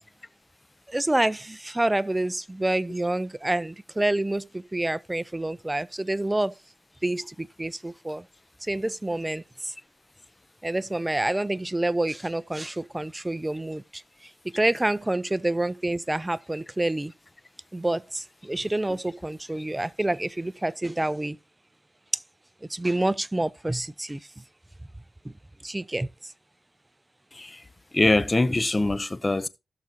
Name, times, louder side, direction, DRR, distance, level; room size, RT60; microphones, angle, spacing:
voice 1, 0.9-6.5 7.0-8.2 8.6-9.7 10.6-14.0 14.5-17.1 17.7-21.4 22.7-24.2 25.6-26.3, right 1 dB, 15° right, 0.4 m, -28 dB
voice 2, 27.3-27.6 27.9-29.5, left 2 dB, 25° left, 0.6 m, -23 dB
17.0 x 6.2 x 2.8 m
cardioid pair, 80°, 0 cm